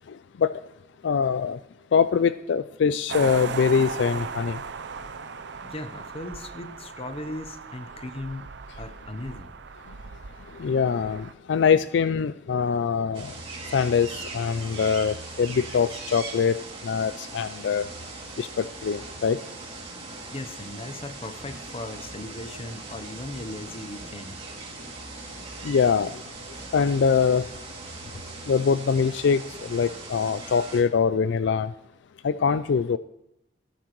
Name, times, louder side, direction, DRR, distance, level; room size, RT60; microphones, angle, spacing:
voice 1, 1.0-1.6 1.9-4.6 10.6-13.3 13.7-14.1 14.3-16.5 16.8-17.8 18.4-19.4 25.6-26.1 26.7-27.4 28.5-29.4 29.7-31.7 32.2-33.0, left 6 dB, 65° left, 0.4 m, -23 dB
sound 1, 3.1-11.3, right 5 dB, 65° right, 0.6 m, -37 dB
voice 2, 5.6-8.5 8.8-9.5 20.3-24.4, left 2 dB, 30° left, 0.8 m, -37 dB
sound 2, 13.1-30.8, right 3 dB, 30° right, 2.6 m, -40 dB
14.5 x 12.5 x 3.1 m
head